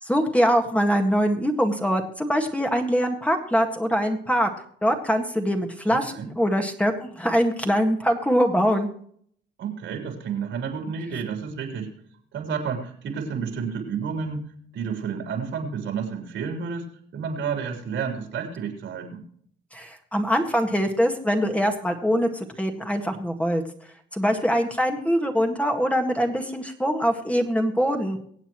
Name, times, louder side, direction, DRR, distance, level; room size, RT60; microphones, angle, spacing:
voice 1, 0.0-4.5 4.8-8.9 19.7-23.6 24.1-28.2, equal, 5° left, 3 dB, 1.8 m, -23 dB
voice 2, 5.9-6.3 9.6-11.9 12.3-19.3, right 6 dB, 75° right, 3 dB, 3.5 m, -31 dB
23.5 x 8.1 x 3.1 m, 0.62 s
cardioid pair, 90°, 20 cm